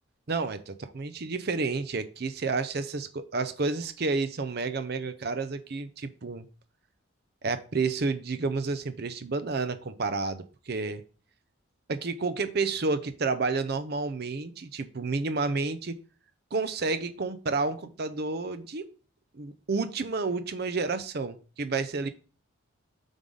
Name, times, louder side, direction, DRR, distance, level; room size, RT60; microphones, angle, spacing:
voice 1, 0.3-6.5 7.4-11.0 11.9-16.0 16.5-18.9 19.3-22.1, right 3 dB, 50° right, 11 dB, 0.6 m, -30 dB
7.2 x 3.6 x 3.8 m, 0.38 s
head